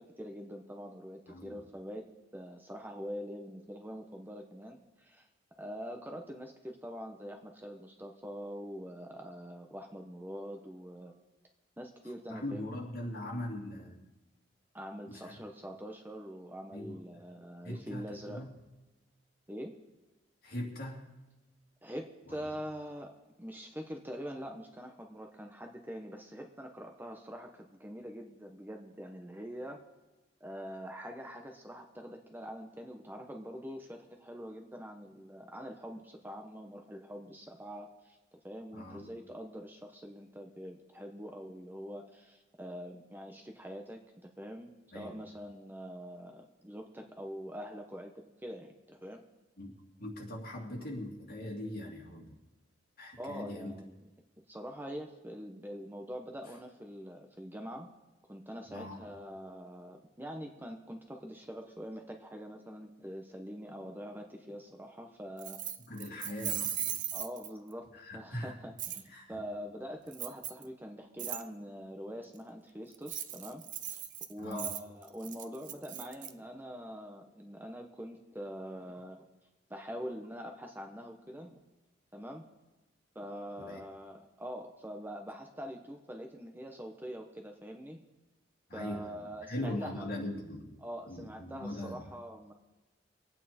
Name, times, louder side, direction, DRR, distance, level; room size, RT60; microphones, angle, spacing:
voice 1, 0.0-2.0 2.3-5.3 5.6-11.1 11.8-12.8 14.7-18.4 19.5-19.7 21.8-23.1 23.4-29.8 30.4-38.2 38.4-49.2 53.2-53.9 54.5-57.9 58.3-65.6 67.1-67.9 68.1-73.6 73.9-74.0 74.3-79.3 79.7-81.6 82.1-82.5 83.1-88.0 88.7-90.1 90.8-92.5, equal, 10° right, 3 dB, 1.0 m, -44 dB
voice 2, 1.3-1.6 12.3-14.0 15.1-15.4 16.7-17.0 17.6-18.6 20.4-21.1 22.3-22.5 38.7-39.1 44.9-45.2 49.6-52.4 53.0-53.8 58.6-59.1 65.8-67.0 67.9-68.6 69.1-69.4 74.4-74.7 83.6-83.8 88.7-90.8 91.1-92.1, left 1 dB, 55° left, -2 dB, 2.8 m, -41 dB
Keys jangling, 65.4-67.7 68.8-69.0 70.1-70.6 71.2-71.4 72.9-76.3, right 11 dB, 45° right, 0.6 m, -38 dB
24.0 x 9.0 x 4.4 m, 1.1 s
head